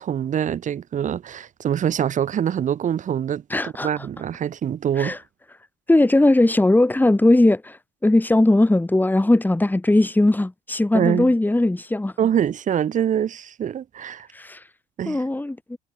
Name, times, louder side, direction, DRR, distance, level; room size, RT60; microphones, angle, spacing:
voice 1, 0.0-5.2 10.9-11.3 12.2-14.3 15.0-15.2, right 9 dB, 45° right, 1.1 m, -24 dB
voice 2, 3.5-3.9 5.0-5.2 5.9-12.1 14.3-14.6 15.1-15.8, left 2 dB, 10° left, 2.2 m, -18 dB
hypercardioid pair, 55°, 17 cm